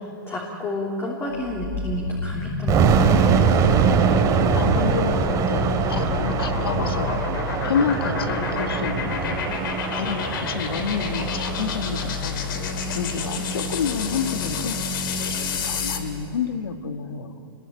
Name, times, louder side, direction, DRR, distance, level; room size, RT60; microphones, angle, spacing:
voice 1, 0.0-3.2, left 1 dB, 20° left, -2 dB, 3.2 m, -30 dB
sound 1, 1.4-16.1, left 3 dB, 65° left, 3.2 m, -29 dB
sound 2, 1.9-9.6, left 13 dB, 45° left, 6.1 m, -36 dB
sound 3, 2.7-13.6, right 6 dB, 30° right, 2.5 m, -23 dB
voice 2, 4.5-7.2 7.6-9.4 9.9-12.4 12.9-14.8 15.2-17.5, left 6 dB, 85° left, 7 dB, 1.9 m, -29 dB
27.5 x 21.0 x 9.0 m, 2.9 s
hypercardioid pair, 140°, 12 cm